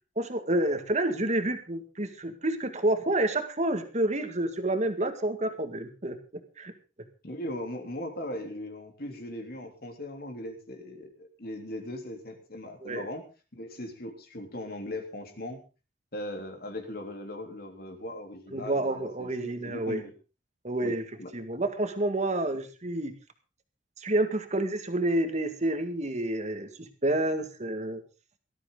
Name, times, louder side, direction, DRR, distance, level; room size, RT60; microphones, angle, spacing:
voice 1, 0.2-6.2 6.6-6.7 12.8-13.1 18.5-20.0 20.6-21.0 21.3-23.1 24.0-28.0, right 1 dB, 40° right, 8 dB, 2.0 m, -29 dB
voice 2, 7.2-13.2 13.5-15.6 16.1-20.1 20.8-21.3, left 1 dB, 60° left, 4 dB, 3.5 m, -39 dB
18.0 x 13.5 x 3.9 m, 0.33 s
head